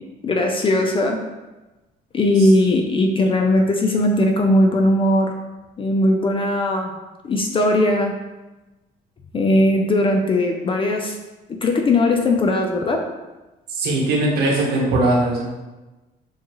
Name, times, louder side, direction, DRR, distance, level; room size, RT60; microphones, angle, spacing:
voice 1, 0.2-1.2 2.1-5.3 5.8-6.9 7.2-8.1 9.3-11.1 11.5-13.0, left 1 dB, 30° left, 3 dB, 0.5 m, -18 dB
voice 2, 13.7-15.4, right 2 dB, 70° right, -3 dB, 1.5 m, -20 dB
7.1 x 2.4 x 3.0 m, 1.1 s
cardioid pair, 110°, 17 cm